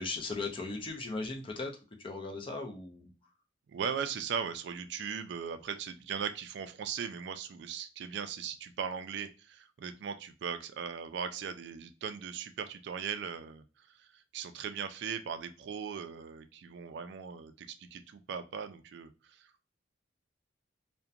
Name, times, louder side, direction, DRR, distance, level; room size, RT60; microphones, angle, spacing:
voice 1, 0.0-1.7 2.0-3.1, left 3 dB, 30° left, 3 dB, 0.5 m, -37 dB
voice 2, 3.7-19.6, right 7 dB, 65° right, 10 dB, 0.3 m, -39 dB
2.8 x 2.1 x 2.4 m, 0.32 s
head